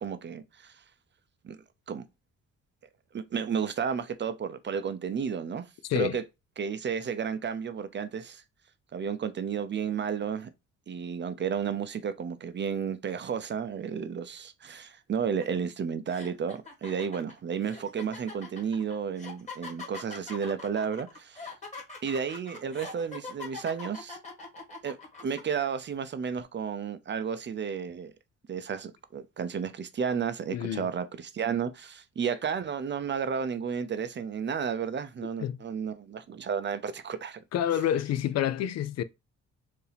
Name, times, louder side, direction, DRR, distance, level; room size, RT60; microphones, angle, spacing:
voice 1, 0.0-0.7 1.4-1.6 1.9-2.0 3.1-5.6 5.9-6.2 6.6-8.4 8.9-10.5 10.9-21.5 22.0-24.2 24.8-25.0 25.2-28.1 28.5-37.4, right 7 dB, 40° right, 0.6 m, -32 dB
sound 1, 15.4-15.6 16.1-25.4, left 4 dB, 25° left, 1.8 m, -43 dB
voice 2, 30.5-30.9 35.4-35.6 37.5-39.0, left 10 dB, 60° left, 0.5 m, -28 dB
4.7 x 2.7 x 3.4 m
cardioid pair, 90°, 30 cm